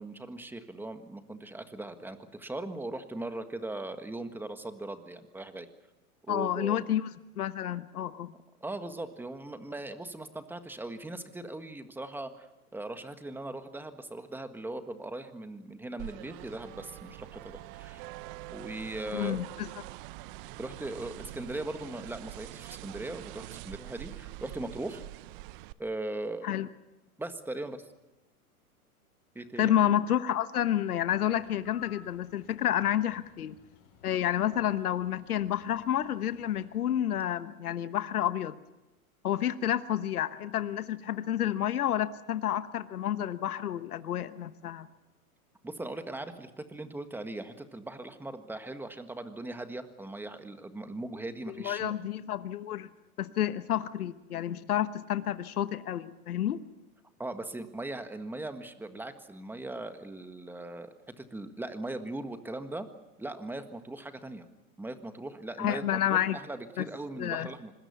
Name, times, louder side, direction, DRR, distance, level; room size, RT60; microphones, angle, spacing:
voice 1, 0.0-5.7 6.2-6.8 8.6-12.5 12.7-18.1 18.5-19.4 20.6-25.0 25.8-26.6 27.2-27.8 29.3-29.8 45.6-51.9 57.2-62.9 63.2-64.5 64.8-67.7, right 2 dB, 5° right, 9 dB, 1.6 m, -39 dB
voice 2, 6.3-7.1 7.4-8.3 19.1-19.7 26.4-26.7 29.6-33.6 34.0-38.6 39.2-44.9 51.5-52.9 53.2-56.6 65.6-66.4 66.8-66.9 67.2-67.5, left 11 dB, 80° left, 12 dB, 1.3 m, -30 dB
sound 1, 16.0-25.7, right 18 dB, 40° right, 0.7 m, -45 dB
Bird, 31.1-36.9, left 9 dB, 45° left, 6.9 m, -58 dB
25.5 x 21.0 x 7.0 m, 1.0 s
hypercardioid pair, 120°, 44 cm